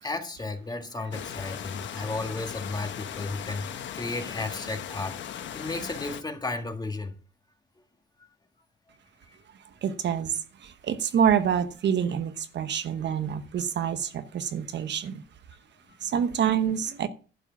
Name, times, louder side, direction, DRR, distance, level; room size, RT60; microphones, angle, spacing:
voice 1, 0.0-7.2 8.9-9.0 9.3-9.4 15.9-16.1, left 2 dB, 20° left, 1.7 m, -34 dB
sound 1, 1.1-6.2, left 9 dB, 70° left, 1.1 m, -38 dB
voice 2, 9.8-15.2 16.0-17.1, right 8 dB, 60° right, 1.0 m, -27 dB
11.5 x 4.9 x 7.2 m
cardioid pair, 90°, 20 cm